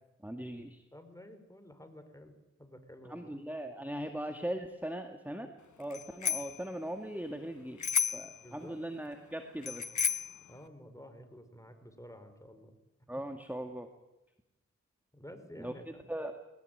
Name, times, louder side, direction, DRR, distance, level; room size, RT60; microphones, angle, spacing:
voice 1, 0.2-0.8 3.1-5.5 5.8-9.8 13.1-13.9 15.6-15.7 16.1-16.4, right 1 dB, 5° right, 6 dB, 2.0 m, -39 dB
voice 2, 0.9-3.4 8.4-8.8 10.5-12.8 15.1-16.1, equal, 10° left, 8 dB, 4.5 m, -51 dB
Bicycle bell, 5.9-6.6 7.8-8.4 9.6-10.4, left 6 dB, 75° left, 1.1 m, -32 dB
21.0 x 18.5 x 9.3 m, 0.96 s
cardioid pair, 40°, 29 cm